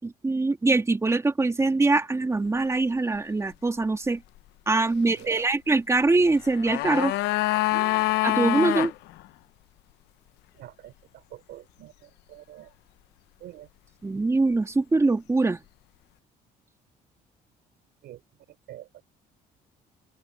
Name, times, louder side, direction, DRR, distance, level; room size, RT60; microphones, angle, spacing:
voice 1, 0.0-4.2 4.7-7.1 8.2-8.9 14.0-15.6, right 3 dB, 15° right, 2.3 m, -23 dB
voice 2, 5.0-5.5 7.7-8.1 10.5-12.7 13.4-13.7 18.0-18.2 18.7-19.0, right 13 dB, 75° right, 5.6 m, -45 dB
sound 1, 6.3-8.9 9.2-9.3, left 18 dB, 85° left, 0.8 m, -25 dB
open air
cardioid pair, 110°, 17 cm